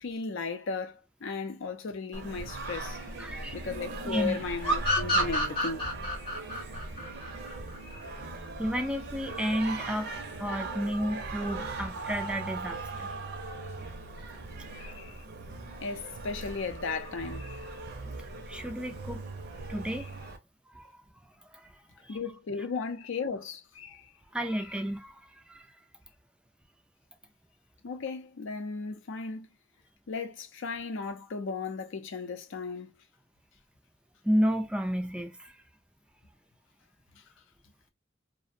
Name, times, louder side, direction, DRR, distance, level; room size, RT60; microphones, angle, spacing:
voice 1, 0.0-3.0 3.5-5.9 6.2-6.3 7.8-8.1 14.7-15.2 15.8-17.7 19.9-20.0 22.1-24.1 27.8-29.5 30.1-32.9, left 4 dB, 65° left, 0.5 m, -36 dB
Singing, 2.1-20.4, right 3 dB, 55° right, 0.6 m, -39 dB
voice 2, 3.2-3.6 4.0-4.4 8.6-10.1 10.4-13.1 18.2-19.2 19.7-20.1 20.7-20.9 21.5-22.2 24.3-25.7 34.2-35.6, equal, 5° right, 0.3 m, -32 dB
sound 1, 4.6-8.0, equal, 25° left, 0.8 m, -28 dB
2.5 x 2.1 x 2.6 m
head